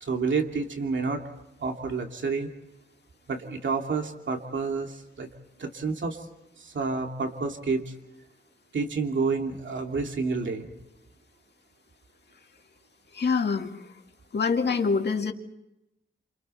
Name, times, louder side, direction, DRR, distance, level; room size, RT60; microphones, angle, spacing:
voice 1, 0.0-1.2 1.6-2.5 3.3-5.3 5.6-6.3 6.6-7.9 8.7-10.7, right 4 dB, 75° right, 3 dB, 2.7 m, -29 dB
voice 2, 13.1-13.9 14.3-15.3, left 5 dB, 60° left, 4 dB, 2.2 m, -25 dB
30.0 x 28.0 x 4.4 m, 0.90 s
wide cardioid pair, 155°, 19 cm